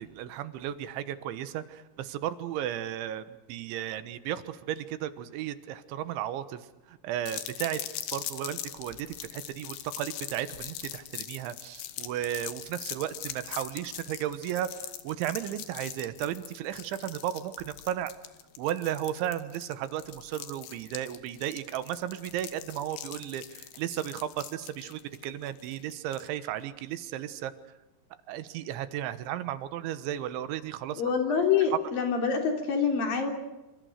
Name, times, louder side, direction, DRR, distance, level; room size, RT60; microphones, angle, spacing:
voice 1, 0.0-6.6 6.9-7.8 8.1-18.1 18.6-27.5 28.3-31.0, right 11 dB, 85° right, 13 dB, 3.6 m, -34 dB
sound 1, 7.3-26.3, left 12 dB, 70° left, 3.4 m, -42 dB
voice 2, 31.0-33.3, left 6 dB, 55° left, 4 dB, 4.7 m, -26 dB
27.0 x 25.5 x 6.6 m, 1.0 s
omnidirectional pair, 5.3 m